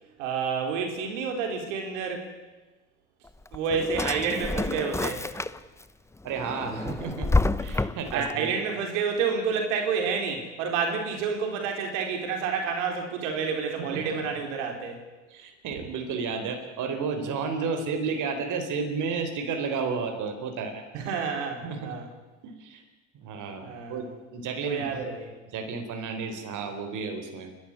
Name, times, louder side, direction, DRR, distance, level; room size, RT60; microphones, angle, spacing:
voice 1, 0.2-2.3 3.5-5.2 8.1-15.0 20.9-22.1 23.6-24.1 24.6-25.3, right 5 dB, 80° right, 3 dB, 4.1 m, -29 dB
Drawer open or close, 3.3-5.8 6.3-8.3, left 2 dB, 5° left, 0.9 m, -28 dB
voice 2, 6.2-7.3 7.6-8.5 13.9-14.2 15.3-21.1 21.6-21.9 22.4-22.8 23.1-25.0 25.5-27.5, right 5 dB, 55° right, 6 dB, 4.2 m, -32 dB
29.5 x 12.5 x 9.9 m, 1.2 s
hypercardioid pair, 85°, 37 cm